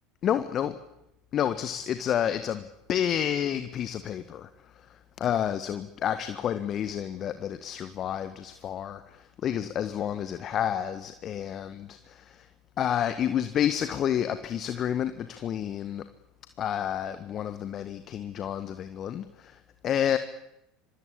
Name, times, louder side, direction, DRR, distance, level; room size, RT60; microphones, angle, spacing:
voice 1, 0.2-0.7 1.3-4.5 4.8-4.9 5.2-12.5 12.8-16.0 16.6-20.2, left 9 dB, 40° left, 10 dB, 1.6 m, -30 dB
26.5 x 24.0 x 8.5 m, 0.87 s
figure-of-eight pair, 70°, 0 cm